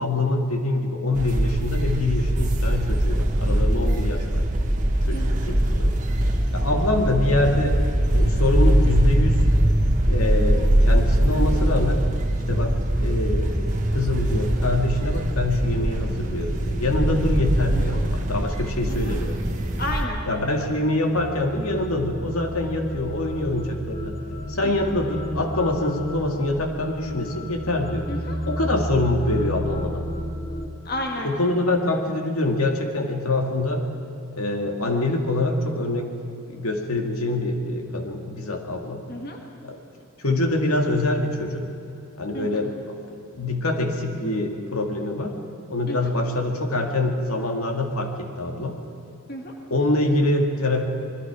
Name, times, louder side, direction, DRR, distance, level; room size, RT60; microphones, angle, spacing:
voice 1, 0.0-4.5 5.1-6.0 6.5-7.8 8.1-9.4 9.8-12.1 12.5-19.4 20.3-24.2 24.5-28.1 28.5-30.0 31.2-33.9 34.3-36.2 36.5-39.1 39.6-39.8 40.2-41.7 42.2-42.9 43.3-45.3 45.7-48.8 49.7-50.9, left 2 dB, 85° left, 3 dB, 2.1 m, -25 dB
sound 1, 1.1-20.1, right 1 dB, 35° right, 1.5 m, -22 dB
voice 2, 19.8-20.2 24.6-24.7 28.1-28.4 30.8-31.3 39.1-39.4 42.3-42.5 45.9-46.1 49.3-49.5, left 1 dB, 45° left, 1 dB, 1.7 m, -32 dB
sound 2, 21.1-30.7, equal, 70° left, 2.7 m, -32 dB
26.5 x 21.0 x 4.9 m, 2.6 s
head